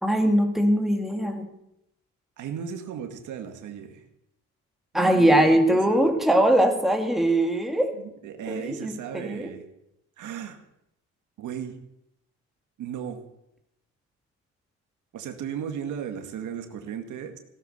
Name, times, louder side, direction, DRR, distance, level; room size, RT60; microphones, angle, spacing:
voice 1, 0.0-1.5 4.9-7.9 8.5-9.5, right 1 dB, ahead, 3 dB, 2.6 m, -21 dB
voice 2, 2.4-4.0 4.9-6.2 7.9-9.6 10.2-10.6 11.4-11.8 12.8-13.2 15.1-17.4, right 8 dB, 80° right, 6 dB, 2.0 m, -35 dB
16.5 x 12.5 x 6.8 m, 0.83 s
cardioid pair, 90°, 30 cm